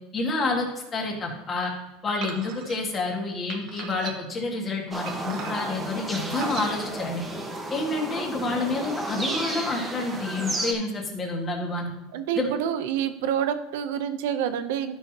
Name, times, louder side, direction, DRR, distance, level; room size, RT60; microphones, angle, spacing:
voice 1, 0.1-0.7 0.9-1.7 2.0-7.2 7.7-11.9 12.4-12.5, left 3 dB, 25° left, 0 dB, 1.8 m, -28 dB
sound 1, 2.2-2.8 3.5-4.4 5.1-5.8 6.3-6.7, right 7 dB, 60° right, 1.1 m, -38 dB
sound 2, 4.9-10.7, right 2 dB, 10° right, 1.1 m, -32 dB
voice 2, 12.1-15.0, right 9 dB, 75° right, 10 dB, 0.7 m, -27 dB
12.0 x 5.6 x 2.9 m, 0.98 s
supercardioid pair, 145°, 0 cm